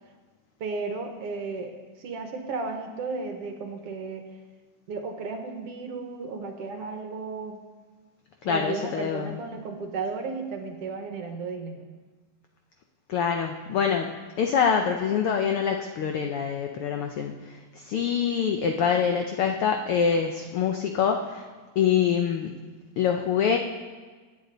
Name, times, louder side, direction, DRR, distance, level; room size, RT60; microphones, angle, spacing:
voice 1, 0.6-4.3 4.9-7.6 8.5-11.9, right 4 dB, 65° right, 4 dB, 1.8 m, -34 dB
voice 2, 8.4-9.4 13.1-14.1 14.4-21.5 21.8-22.6 23.0-23.6, left 7 dB, 80° left, 4 dB, 1.2 m, -25 dB
23.0 x 8.5 x 3.9 m, 1.4 s
omnidirectional pair, 3.3 m